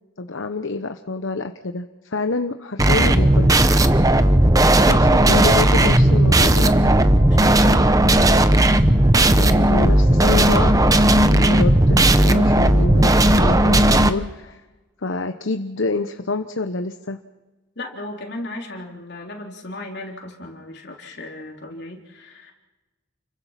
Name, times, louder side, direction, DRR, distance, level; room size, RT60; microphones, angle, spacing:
voice 1, 0.2-3.7 4.9-6.7 9.2-14.6 15.0-17.2, left 3 dB, 75° left, 7 dB, 1.0 m, -27 dB
sound 1, 2.8-14.1, right 1 dB, 20° right, 0.9 m, -15 dB
voice 2, 7.1-7.9 17.8-22.5, left 2 dB, 55° left, 1 dB, 4.0 m, -36 dB
29.5 x 22.5 x 5.9 m, 1.2 s
head